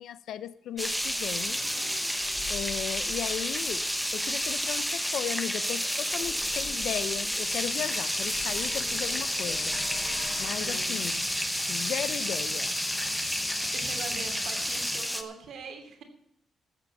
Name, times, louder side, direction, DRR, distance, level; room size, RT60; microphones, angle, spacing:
voice 1, 0.0-1.6 2.5-9.8 10.4-11.2 11.7-12.8, left 10 dB, 80° left, 16 dB, 0.6 m, -36 dB
sound 1, 0.7-10.8, left 5 dB, 65° left, 4.2 m, -46 dB
sound 2, 0.8-15.2, equal, ahead, 1.0 m, -31 dB
sound 3, 7.4-15.0, left 4 dB, 35° left, 3.3 m, -38 dB
voice 2, 10.5-11.0 13.4-16.0, right 5 dB, 70° right, 4 dB, 2.9 m, -42 dB
14.0 x 8.0 x 6.8 m, 0.75 s
cardioid pair, 155°, 0 cm